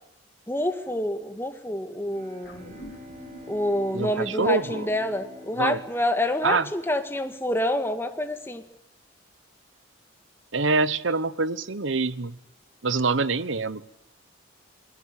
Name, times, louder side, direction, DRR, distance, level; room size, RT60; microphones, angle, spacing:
voice 1, 0.5-2.7 3.5-8.6, left 1 dB, 10° left, 7 dB, 1.9 m, -27 dB
Bowed string instrument, 2.0-6.9, equal, 35° right, 4.4 m, -46 dB
sound 1, 2.4-7.0 7.4-7.5, left 1 dB, 50° left, 4.2 m, -50 dB
voice 2, 3.9-4.9 5.6-5.8 6.4-6.7 10.5-12.4 12.8-13.9, right 3 dB, 70° right, 17 dB, 1.1 m, -25 dB
28.5 x 21.5 x 8.4 m, 0.80 s
head